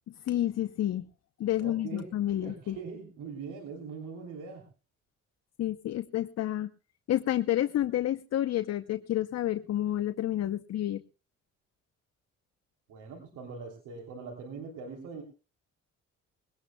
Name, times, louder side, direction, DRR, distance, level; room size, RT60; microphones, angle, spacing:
voice 1, 0.3-1.0 1.4-2.8 5.6-6.7 7.1-11.0, left 12 dB, 60° left, 11 dB, 0.7 m, -29 dB
voice 2, 1.6-2.1 2.4-4.7 12.9-15.2, right 5 dB, 90° right, 2 dB, 3.2 m, -42 dB
21.5 x 18.0 x 2.3 m, 0.33 s
cardioid pair, 90°, 30 cm